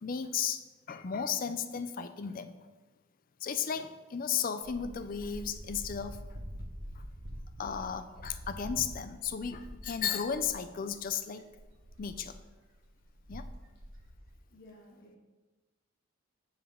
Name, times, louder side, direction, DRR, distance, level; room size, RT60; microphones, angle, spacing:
voice 1, 0.0-0.6 0.9-2.6 3.4-6.2 6.9-7.0 7.6-11.5 12.0-12.4 13.3-13.5, left 7 dB, 45° left, 10 dB, 0.4 m, -34 dB
sound 1, 4.6-10.6 10.9-11.0 11.4-14.3, equal, 75° right, 1.1 m, -46 dB
voice 2, 14.5-15.2, left 1 dB, 60° left, -6 dB, 1.6 m, -55 dB
7.1 x 6.9 x 3.7 m, 1.2 s
head